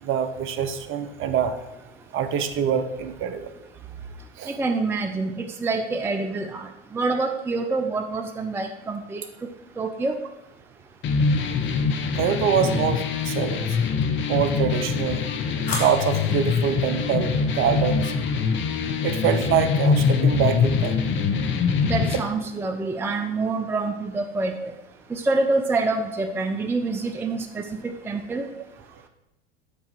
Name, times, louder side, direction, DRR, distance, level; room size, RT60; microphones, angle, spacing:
voice 1, 0.0-1.5 2.1-3.5 4.4-4.5 12.2-13.7 14.3-15.2 15.8-18.1 19.0-21.0, right 8 dB, 40° right, 10 dB, 0.8 m, -24 dB
voice 2, 4.5-9.2 9.8-10.1 21.8-24.6 25.1-28.4, right 3 dB, 5° right, 5 dB, 0.5 m, -26 dB
sound 1, 11.0-22.2, left 5 dB, 35° left, 1.0 m, -24 dB
sound 2, 11.3-12.0 14.4-16.5, left 3 dB, 70° left, 2.4 m, -37 dB
8.4 x 4.3 x 5.9 m, 0.93 s
hypercardioid pair, 85°, 32 cm